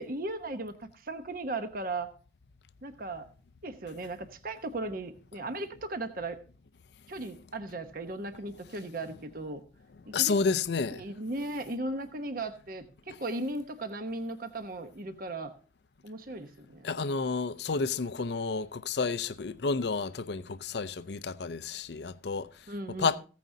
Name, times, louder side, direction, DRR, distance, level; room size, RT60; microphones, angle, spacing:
voice 1, 0.0-2.1 2.8-3.3 3.6-6.4 7.1-9.6 10.1-10.4 10.9-15.5 16.0-16.9 22.7-23.1, right 2 dB, 50° right, 1.0 m, -37 dB
voice 2, 10.1-11.0 16.8-22.5 23.0-23.2, left 4 dB, 65° left, 0.5 m, -30 dB
15.5 x 9.1 x 2.7 m
head